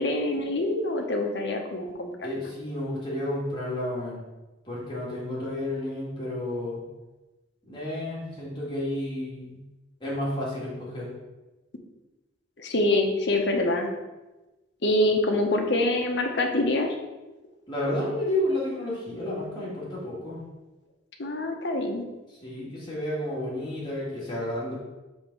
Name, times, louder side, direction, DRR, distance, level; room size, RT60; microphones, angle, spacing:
voice 1, 0.0-2.1 12.6-13.9 14.8-17.0 21.2-22.0, left 1 dB, 65° left, 3 dB, 0.8 m, -25 dB
voice 2, 2.2-4.2 4.7-6.8 7.6-9.6 10.0-11.1 17.7-20.4 22.4-24.7, left 1 dB, 25° left, -6 dB, 1.9 m, -31 dB
5.3 x 3.5 x 5.3 m, 1.1 s
head